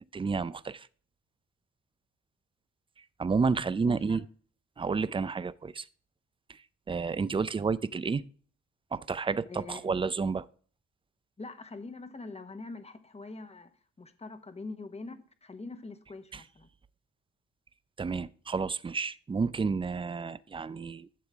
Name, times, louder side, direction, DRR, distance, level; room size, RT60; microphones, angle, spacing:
voice 1, 0.1-0.9 3.2-4.2 4.8-5.8 6.9-8.2 8.9-10.4 16.3-16.4 18.0-21.1, right 4 dB, 20° right, 0.5 m, -30 dB
voice 2, 3.9-4.2 9.5-9.8 11.4-16.7, left 3 dB, 20° left, 1.2 m, -43 dB
11.5 x 7.1 x 3.5 m
cardioid pair, 90°, 30 cm